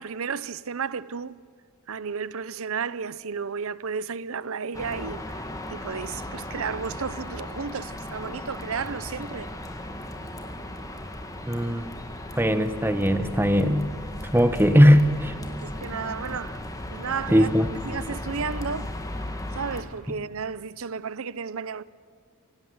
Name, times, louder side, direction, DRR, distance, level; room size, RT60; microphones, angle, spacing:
voice 1, 0.0-1.3 1.9-9.5 15.4-16.6 16.9-17.5 17.8-18.9 19.5-21.8, right 6 dB, 65° right, 0.7 m, -33 dB
sound 1, 4.7-19.8, left 1 dB, 15° left, 1.9 m, -36 dB
voice 2, 11.5-11.9 12.4-13.9 14.3-15.3 17.3-17.7, equal, 10° right, 1.2 m, -19 dB
26.0 x 17.5 x 7.9 m
head